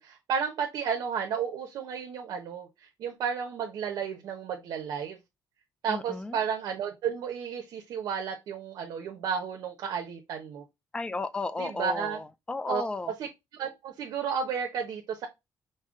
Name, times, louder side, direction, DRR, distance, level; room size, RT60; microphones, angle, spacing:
voice 1, 0.0-5.2 5.8-10.6 11.6-12.2 12.7-12.8 13.2-13.3 13.6-15.3, right 7 dB, 75° right, 0.8 m, -32 dB
voice 2, 5.9-6.4 10.9-13.1, left 3 dB, 15° left, 0.4 m, -33 dB
5.4 x 2.1 x 3.6 m
cardioid pair, 150°, 7 cm